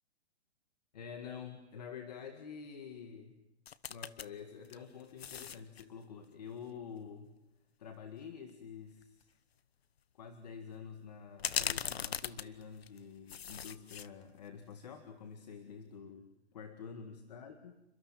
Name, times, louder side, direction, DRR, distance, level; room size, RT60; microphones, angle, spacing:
voice 1, 0.9-3.4 3.9-7.3 7.8-9.3 10.1-17.8, left 6 dB, 40° left, 6 dB, 2.0 m, -48 dB
sound 1, 3.7-4.3 4.6-5.8 8.5-8.6 9.0-9.2 11.4-13.0 13.3-14.1 14.5-14.6, left 8 dB, 65° left, 1.2 m, -38 dB
29.5 x 25.5 x 7.6 m, 0.92 s
hypercardioid pair, 180°, 33 cm